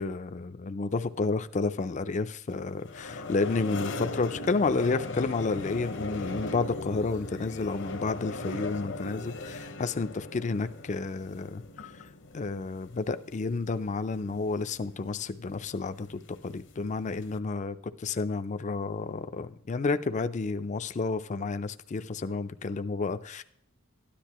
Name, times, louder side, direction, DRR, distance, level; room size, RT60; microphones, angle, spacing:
voice 1, 0.0-11.6 12.3-17.7 18.0-23.4, left 3 dB, 35° left, 0.4 m, -31 dB
sound 1, 2.5-17.4, left 2 dB, 60° left, 0.9 m, -39 dB
13.0 x 10.0 x 3.0 m
head